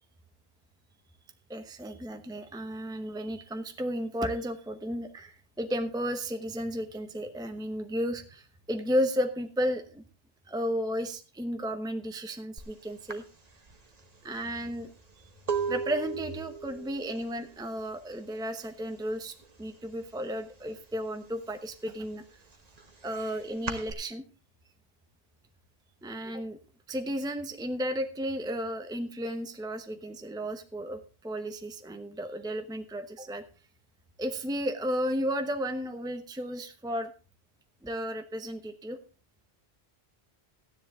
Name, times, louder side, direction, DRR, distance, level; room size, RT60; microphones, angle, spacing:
voice 1, 1.5-10.0 10.5-13.2 14.2-14.9 15.7-22.2 23.0-24.2 26.0-26.6 26.9-33.4 34.2-37.1 37.8-39.0, equal, 5° right, 7 dB, 0.9 m, -33 dB
sound 1, 12.6-12.7 13.1-18.8 19.0-19.5 19.8-21.0 21.4-23.9, right 5 dB, 40° right, 1.4 m, -37 dB
13.5 x 10.0 x 3.6 m, 0.35 s
omnidirectional pair, 1.1 m